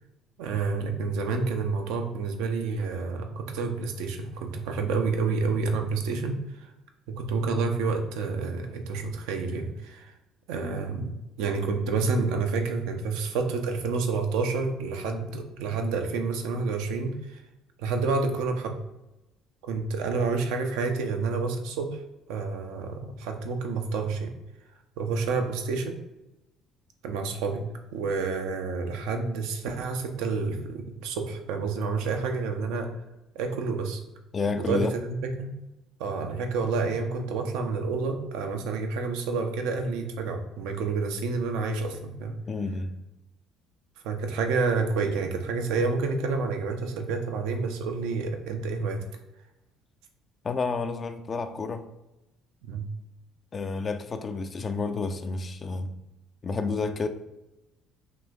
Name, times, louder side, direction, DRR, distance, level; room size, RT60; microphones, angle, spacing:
voice 1, 0.4-6.4 7.1-10.1 10.5-11.1 11.4-17.4 17.8-18.7 19.7-22.0 22.3-24.3 25.0-26.0 27.0-27.6 27.9-32.9 33.3-34.0 34.6-35.5 36.0-42.3 44.0-49.0 52.6-52.8, right 4 dB, 70° right, 5 dB, 0.6 m, -29 dB
voice 2, 34.3-34.9 42.5-42.9 50.4-51.9 53.5-55.9 56.4-57.1, left 4 dB, 35° left, 8 dB, 0.4 m, -30 dB
4.8 x 3.3 x 2.4 m, 0.96 s
hypercardioid pair, 55°, 0 cm